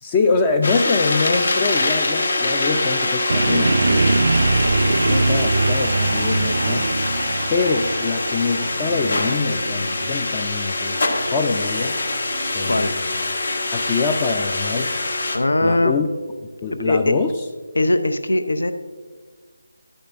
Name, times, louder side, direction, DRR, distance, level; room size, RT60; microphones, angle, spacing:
voice 1, 0.0-4.1 4.9-6.9 7.5-12.0 12.5-13.0 13.7-14.9 15.6-16.1 16.6-17.3, left 4 dB, 20° left, 5 dB, 0.4 m, -24 dB
sound 1, 0.6-15.4, left 2 dB, 60° left, 1.1 m, -24 dB
sound 2, 3.3-15.3, right 3 dB, 60° right, 0.3 m, -24 dB
voice 2, 15.3-15.9 16.7-17.1 17.8-18.7, left 1 dB, 85° left, 9 dB, 0.6 m, -20 dB
11.0 x 8.7 x 2.6 m, 1.4 s
figure-of-eight pair, 165°, 0 cm